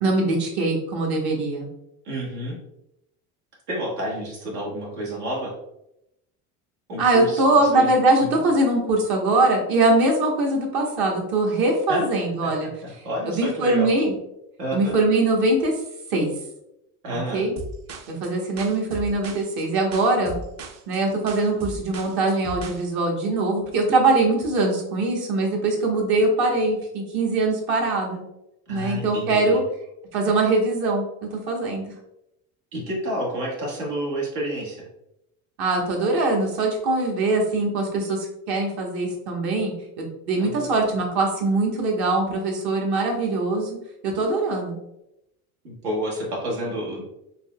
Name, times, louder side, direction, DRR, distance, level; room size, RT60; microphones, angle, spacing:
voice 1, 0.0-1.7 7.0-12.7 13.4-14.1 14.7-15.7 16.1-16.3 17.1-17.5 18.1-20.4 20.9-28.2 28.7-29.6 30.1-31.0 31.3-31.8 35.6-43.8 44.0-44.8, right 2 dB, 55° right, 0 dB, 1.2 m, -22 dB
voice 2, 2.0-2.6 3.7-5.5 6.9-7.4 7.7-7.9 8.2-8.3 11.9-12.5 12.8-13.9 14.6-14.9 17.0-17.4 28.7-29.6 32.7-34.9 40.4-40.7 45.6-47.1, right 1 dB, 85° right, -3 dB, 1.4 m, -30 dB
sound 1, 17.6-22.8, right 3 dB, 40° right, 0.5 m, -37 dB
4.0 x 2.8 x 2.2 m, 0.83 s
hypercardioid pair, 80°, 44 cm